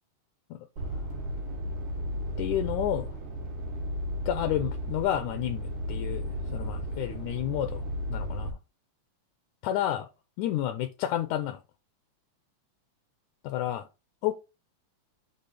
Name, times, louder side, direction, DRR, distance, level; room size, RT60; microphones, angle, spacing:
voice 1, 0.5-1.1 2.4-3.1 4.3-8.6 9.6-10.1 10.4-11.6 13.4-13.9 14.2-14.3, left 12 dB, 80° left, 1.9 m, -31 dB
sound 1, 0.8-8.5, equal, 70° right, 3.3 m, -34 dB
6.8 x 2.8 x 5.7 m
omnidirectional pair, 3.6 m